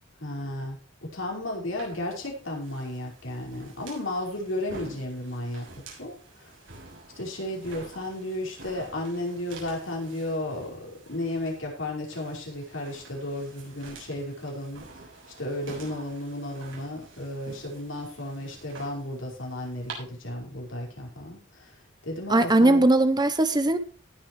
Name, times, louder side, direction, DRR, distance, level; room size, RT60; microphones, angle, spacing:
voice 1, 0.2-5.6 6.0-6.5 7.2-14.8 15.4-21.8 22.0-22.9, left 1 dB, 80° left, 5.3 m, -34 dB
sound 1, 1.8-19.9, right 3 dB, 75° right, 6.6 m, -48 dB
voice 2, 22.3-23.8, right 2 dB, 20° right, 0.9 m, -19 dB
18.5 x 7.9 x 3.2 m
head